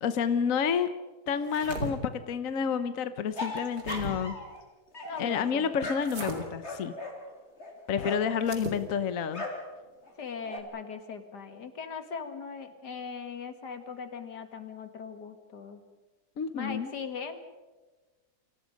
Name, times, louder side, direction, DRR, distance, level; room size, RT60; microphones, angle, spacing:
voice 1, 0.0-0.9 1.3-4.4 5.2-6.9 7.9-9.4 16.4-16.9, left 7 dB, 60° left, 11 dB, 1.2 m, -29 dB
sound 1, 1.3-1.9 3.4-4.1 6.0-6.4 8.4-8.8, right 2 dB, 80° right, 3.5 m, -37 dB
sound 2, 3.4-4.6 4.9-8.4 9.3-9.7 10.0-10.6, left 2 dB, 40° left, 4.0 m, -38 dB
voice 2, 5.0-5.7 8.0-8.2 10.2-15.8 16.5-17.4, left 5 dB, 80° left, 8 dB, 2.5 m, -40 dB
29.5 x 25.0 x 5.2 m, 1.2 s
omnidirectional pair, 1.7 m